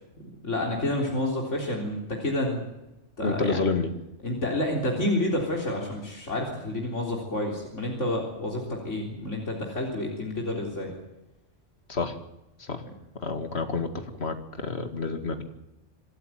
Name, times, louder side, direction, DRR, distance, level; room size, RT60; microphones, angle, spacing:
voice 1, 0.4-2.6 3.2-3.7 4.2-10.9, left 1 dB, 85° left, -1 dB, 4.1 m, -29 dB
voice 2, 3.2-3.9 11.9-12.2 12.6-12.8 13.2-15.4, left 4 dB, 60° left, 7 dB, 2.3 m, -29 dB
26.0 x 13.0 x 9.2 m, 0.96 s
omnidirectional pair, 1.2 m